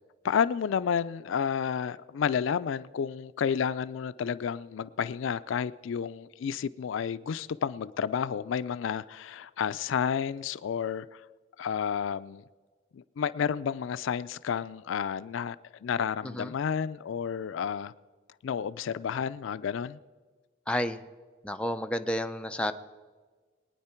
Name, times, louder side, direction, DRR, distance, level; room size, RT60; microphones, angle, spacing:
voice 1, 0.2-11.2 11.6-12.4 12.9-15.6 15.8-17.9 18.4-20.0, left 7 dB, 70° left, 0.4 m, -31 dB
voice 2, 20.7-21.0 21.4-22.7, equal, 5° left, 0.4 m, -30 dB
22.0 x 9.7 x 4.4 m
head